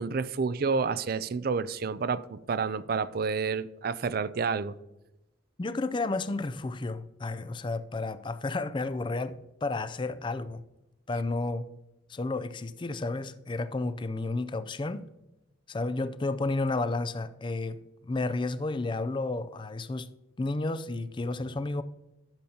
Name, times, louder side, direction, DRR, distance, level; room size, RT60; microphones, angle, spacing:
voice 1, 0.0-4.7, right 5 dB, 50° right, 0.4 m, -29 dB
voice 2, 5.6-10.6 11.1-11.7 12.1-15.0 15.7-20.1 20.4-21.8, left 2 dB, 25° left, 0.4 m, -32 dB
12.0 x 6.9 x 2.8 m
head